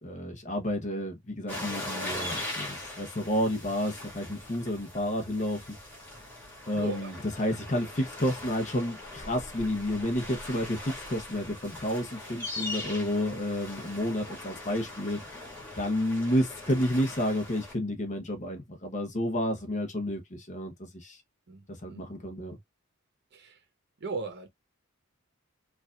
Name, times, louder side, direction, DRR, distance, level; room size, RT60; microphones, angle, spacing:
voice 1, 0.0-5.8 6.7-15.2 15.8-21.2 21.7-22.6, left 1 dB, 35° left, 0.9 m, -30 dB
sound 1, 1.5-17.7, left 2 dB, 10° left, 2.0 m, -40 dB
voice 2, 6.7-7.1 21.5-22.1 23.3-23.6 24.0-24.5, right 3 dB, 55° right, 0.9 m, -37 dB
4.8 x 2.5 x 2.3 m
head